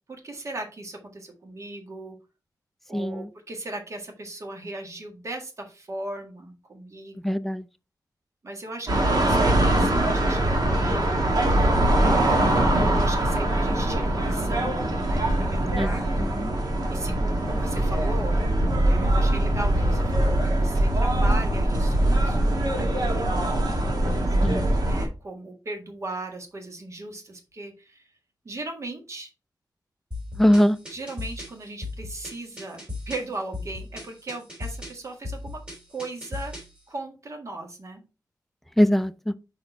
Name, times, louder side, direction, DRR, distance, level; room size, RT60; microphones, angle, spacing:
voice 1, 0.1-2.2 2.9-7.4 8.4-11.2 12.0-12.6 12.9-14.8 15.1-16.1 16.9-18.4 18.9-23.4 24.8-28.1 28.4-29.3 30.9-35.6 35.9-36.5 36.9-38.0, right 2 dB, 45° right, 1.6 m, -37 dB
voice 2, 2.9-3.2 7.2-7.6 15.8-15.9 16.4-16.5 24.4-24.7 30.4-30.8 38.8-39.3, equal, 5° left, 0.4 m, -21 dB
sound 1, 8.9-25.1, right 1 dB, 65° right, 1.6 m, -22 dB
sound 2, 30.1-36.8, left 2 dB, 15° right, 2.8 m, -37 dB
5.3 x 4.3 x 4.4 m
wide cardioid pair, 150°, 7 cm